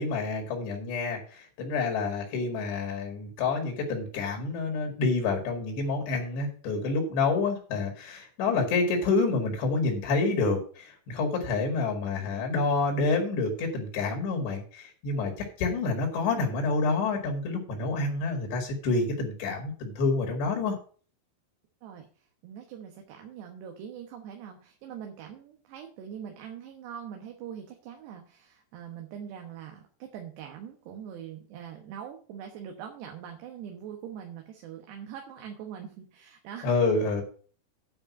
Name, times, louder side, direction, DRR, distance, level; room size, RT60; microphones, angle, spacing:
voice 1, 0.0-20.8 36.6-37.2, left 3 dB, 65° left, 2 dB, 4.0 m, -28 dB
voice 2, 21.8-36.8, right 8 dB, 70° right, 3 dB, 3.1 m, -43 dB
9.9 x 5.4 x 7.1 m, 0.42 s
omnidirectional pair, 5.5 m